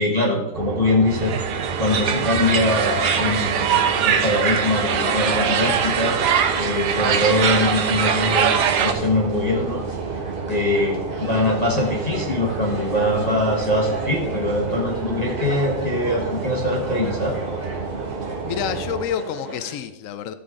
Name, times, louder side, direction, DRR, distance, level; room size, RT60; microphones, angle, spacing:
voice 1, 0.0-1.3 1.8-6.2 6.6-9.8 10.5-17.3, left 2 dB, 25° left, -2 dB, 1.4 m, -22 dB
sound 1, 0.5-19.1, right 5 dB, 50° right, 0.6 m, -30 dB
sound 2, 1.1-8.9, right 7 dB, 70° right, 1.4 m, -22 dB
sound 3, 1.9-19.8, right 1 dB, 25° right, 1.5 m, -36 dB
voice 2, 18.5-20.3, left 9 dB, 70° left, 10 dB, 0.7 m, -28 dB
14.5 x 6.8 x 3.7 m, 0.94 s
omnidirectional pair, 1.9 m